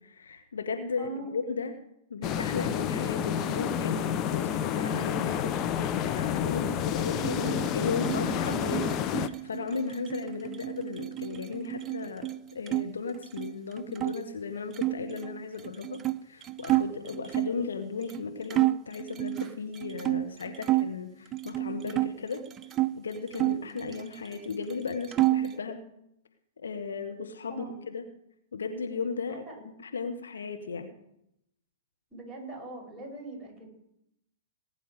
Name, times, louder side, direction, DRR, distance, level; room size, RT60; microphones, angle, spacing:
voice 1, 0.0-1.7 2.1-22.4 22.9-25.8 26.6-28.0 28.5-29.4 29.8-30.9, left 5 dB, 70° left, 6 dB, 1.4 m, -36 dB
voice 2, 1.0-1.3 27.5-27.8 29.3-29.6 32.1-33.7, right 3 dB, ahead, -1 dB, 5.7 m, -41 dB
sound 1, 2.2-9.3, left 9 dB, 30° left, 0.8 m, -29 dB
sound 2, 7.1-12.8 13.1-14.2 14.7-17.6 18.1-18.2 18.5-20.9 21.3-22.9 23.3-24.4 24.7-25.6, right 16 dB, 25° right, 0.6 m, -30 dB
20.0 x 9.9 x 4.9 m, 0.80 s
figure-of-eight pair, 110°, 0 cm